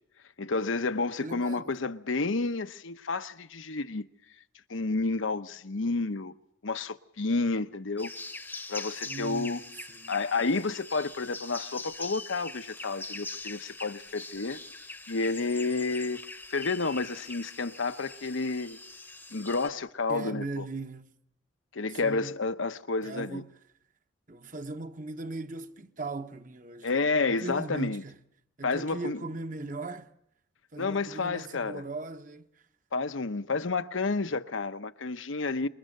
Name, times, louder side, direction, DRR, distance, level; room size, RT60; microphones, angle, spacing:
voice 1, 0.4-4.1 4.7-6.3 6.6-8.1 8.7-9.6 10.1-14.6 15.1-16.2 16.5-18.8 19.3-20.7 21.7-23.4 26.8-28.0 28.6-29.2 30.8-31.8 32.9-35.7, left 3 dB, 80° left, 0.9 m, -30 dB
voice 2, 1.2-1.7 9.1-9.6 9.9-10.2 20.1-21.1 22.0-22.4 23.0-23.6 24.3-28.1 28.6-30.1 30.7-32.5, right 3 dB, 40° right, 1.1 m, -39 dB
sound 1, 8.0-19.7, left 3 dB, 10° left, 0.9 m, -43 dB
27.0 x 22.0 x 6.6 m
head